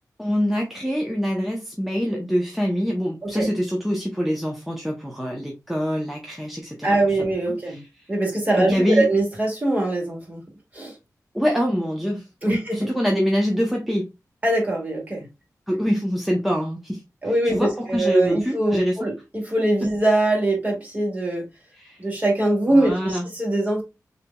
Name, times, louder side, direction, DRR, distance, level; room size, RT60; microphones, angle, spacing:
voice 1, 0.2-7.0 7.7-7.8 8.5-9.1 11.3-14.1 15.7-17.0 17.4-19.0 21.8-22.0 22.7-23.3, equal, ahead, 0.7 m, -24 dB
voice 2, 6.8-7.8 8.1-10.4 10.7-10.9 12.4-12.9 14.4-15.2 17.2-21.5 22.0-23.8, right 1 dB, 25° right, 2.1 m, -22 dB
6.6 x 2.9 x 2.3 m
wide cardioid pair, 130°, 6 cm